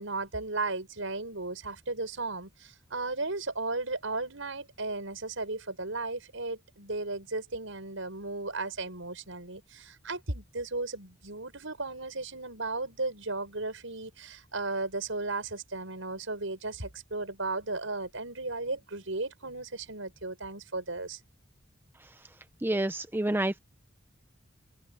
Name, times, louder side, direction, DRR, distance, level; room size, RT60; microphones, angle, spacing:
voice 1, 0.0-21.2, right 3 dB, 75° right, 5.8 m, -35 dB
voice 2, 22.6-23.6, right 1 dB, 10° right, 0.6 m, -28 dB
open air
head